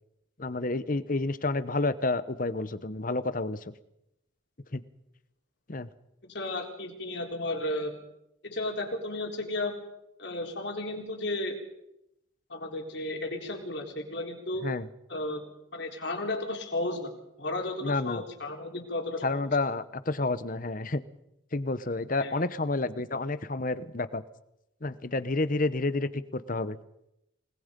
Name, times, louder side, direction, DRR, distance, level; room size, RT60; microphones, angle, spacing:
voice 1, 0.4-3.7 4.7-4.8 5.7-5.9 14.6-14.9 17.8-18.2 19.2-21.0 21.5-24.2 24.8-26.8, left 2 dB, 45° left, 14 dB, 1.0 m, -30 dB
voice 2, 6.3-8.0 8.4-9.8 10.2-11.6 12.5-14.7 15.1-15.5 15.7-17.1 17.4-19.5 22.2-22.3, left 2 dB, 60° left, 2 dB, 4.0 m, -33 dB
28.5 x 20.0 x 5.3 m, 0.85 s
head